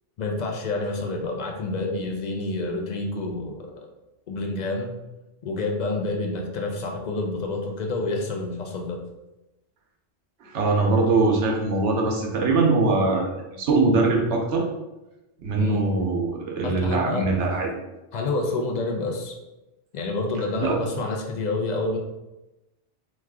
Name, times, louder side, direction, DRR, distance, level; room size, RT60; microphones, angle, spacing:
voice 1, 0.2-3.9 4.3-4.9 5.4-9.0 15.6-15.8 16.6-17.3 18.1-19.4 19.9-22.0, left 2 dB, 55° left, 1 dB, 0.5 m, -28 dB
voice 2, 10.4-14.6 15.4-17.7 20.6-20.8, right 3 dB, 85° right, 0 dB, 1.0 m, -22 dB
3.0 x 2.4 x 3.4 m, 0.99 s
omnidirectional pair, 1.1 m